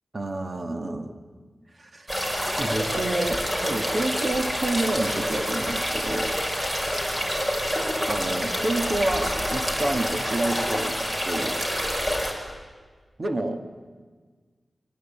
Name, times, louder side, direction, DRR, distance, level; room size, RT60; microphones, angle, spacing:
voice 1, 0.1-1.2 1.8-2.1 2.6-6.4 8.1-11.0 11.2-11.6 13.2-13.6, right 2 dB, 45° right, 5 dB, 2.2 m, -29 dB
sound 1, 2.1-12.3, equal, 20° right, 5.8 m, -27 dB
25.5 x 23.5 x 9.0 m, 1.5 s
wide cardioid pair, 80°, 0 cm